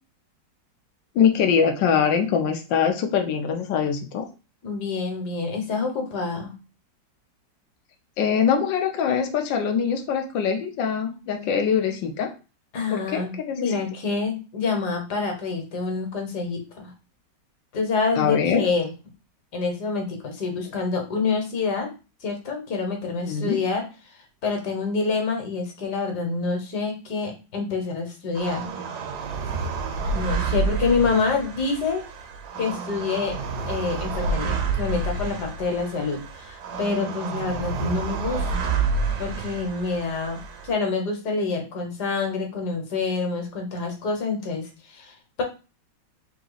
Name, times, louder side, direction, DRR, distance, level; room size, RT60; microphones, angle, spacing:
voice 1, 1.1-4.3 8.2-12.3 12.9-13.7 18.1-18.6 23.3-23.6, left 7 dB, 90° left, 4 dB, 1.4 m, -23 dB
voice 2, 4.6-6.5 12.7-16.9 17.7-18.9 19.5-21.9 22.2-23.9 24.4-28.7 30.1-32.0 32.6-33.4 33.7-38.8 39.2-40.4 40.6-45.4, left 4 dB, 65° left, 3 dB, 1.7 m, -27 dB
sound 1, 28.3-40.7, right 4 dB, 70° right, 1.2 m, -29 dB
3.7 x 2.9 x 3.9 m, 0.31 s
omnidirectional pair, 1.9 m